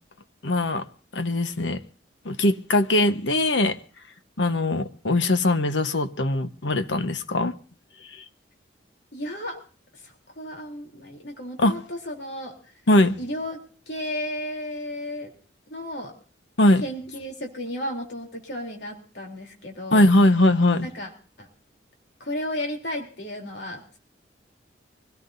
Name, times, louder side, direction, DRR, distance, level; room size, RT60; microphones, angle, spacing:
voice 1, 0.4-0.8 1.1-1.8 2.2-3.8 4.4-7.6 8.1-8.2 11.6-11.7 12.9-13.2 16.6-16.8 19.9-20.9, left 1 dB, 80° left, 1.2 m, -21 dB
voice 2, 9.1-9.6 10.4-12.5 13.2-13.6 13.9-15.3 15.7-16.1 16.8-20.0 20.8-21.1 21.4-21.5 22.2-24.0, left 1 dB, 65° left, 3.5 m, -33 dB
24.0 x 17.5 x 2.7 m
head